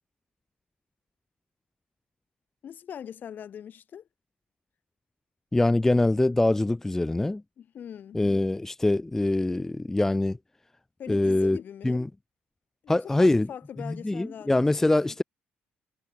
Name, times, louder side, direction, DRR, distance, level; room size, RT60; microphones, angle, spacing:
voice 1, 2.6-4.1 7.6-8.2 11.0-12.1 12.8-15.2, left 9 dB, 50° left, 6.3 m, -42 dB
voice 2, 5.5-7.4 8.1-10.4 11.1-11.6 11.8-12.1 12.9-13.5 13.8-15.2, left 2 dB, 10° left, 0.4 m, -24 dB
cardioid pair, 105°, 4 cm